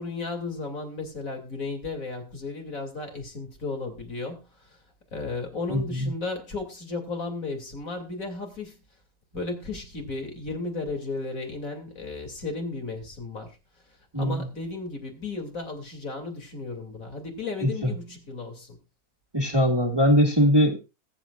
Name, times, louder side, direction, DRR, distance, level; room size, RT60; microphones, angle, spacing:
voice 1, 0.0-4.4 5.1-8.8 9.3-13.5 14.1-18.8, left 3 dB, 55° left, 3.2 m, -34 dB
voice 2, 5.7-6.1 14.1-14.4 17.6-17.9 19.3-20.8, equal, 15° right, 1.9 m, -21 dB
21.0 x 8.5 x 2.5 m
omnidirectional pair, 1.7 m